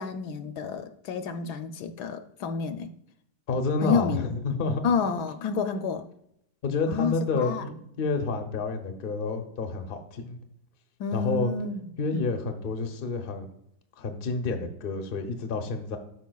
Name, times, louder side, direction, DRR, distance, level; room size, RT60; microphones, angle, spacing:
voice 1, 0.0-2.9 3.8-4.3 4.8-6.1 6.9-7.6 11.0-11.8 12.1-12.3, left 5 dB, 75° left, 9 dB, 1.1 m, -29 dB
voice 2, 3.5-4.8 6.6-10.4 11.1-11.5 12.0-13.5 14.0-16.0, left 3 dB, 50° left, 5 dB, 0.6 m, -29 dB
12.0 x 4.9 x 2.3 m, 0.77 s
omnidirectional pair, 1.8 m